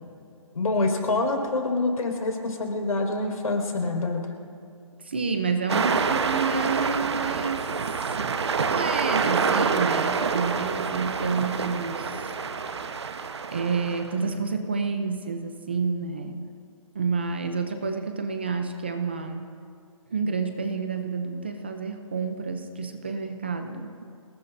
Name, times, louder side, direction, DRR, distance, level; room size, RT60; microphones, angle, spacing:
voice 1, 0.5-4.2, left 2 dB, 80° left, 1 dB, 4.9 m, -26 dB
voice 2, 5.0-7.7 8.0-8.2 8.6-12.3 13.5-16.5 16.9-19.5 20.1-24.0, right 4 dB, 20° right, 7 dB, 0.5 m, -29 dB
sound 1, 5.7-14.1, right 5 dB, 50° right, 1.0 m, -27 dB
27.5 x 19.5 x 2.6 m, 2.5 s
hypercardioid pair, 175°, 18 cm